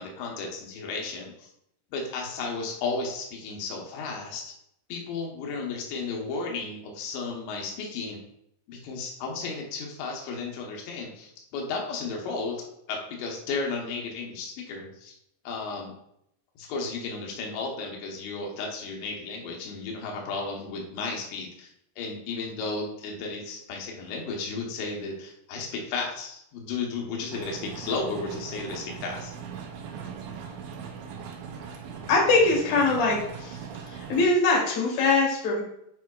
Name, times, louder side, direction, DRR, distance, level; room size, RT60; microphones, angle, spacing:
voice 1, 0.0-1.5 1.9-4.5 4.9-8.2 8.7-15.1 15.5-15.9 16.6-21.7 22.0-29.3, left 4 dB, 90° left, 0 dB, 3.3 m, -34 dB
sound 1, 27.3-34.2, right 6 dB, 90° right, 3.0 m, -40 dB
voice 2, 32.1-33.6 33.8-35.6, left 3 dB, 50° left, -3 dB, 2.6 m, -22 dB
9.1 x 4.7 x 2.3 m, 0.74 s
omnidirectional pair, 4.9 m